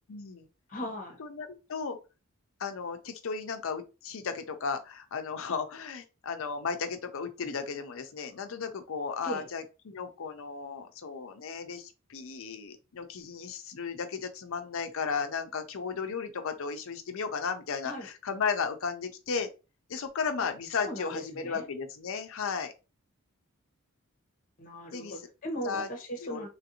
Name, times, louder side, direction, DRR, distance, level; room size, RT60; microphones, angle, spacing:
voice 1, 0.1-0.5 1.2-2.0 2.6-19.5 19.9-22.7 24.9-25.3 25.6-25.9 26.2-26.4, left 5 dB, 65° left, 0.5 m, -35 dB
voice 2, 0.7-1.2 9.2-9.4 17.8-18.1 20.4-20.5 20.8-21.7 24.6-26.5, equal, 40° left, 0.9 m, -38 dB
3.1 x 2.6 x 2.8 m
head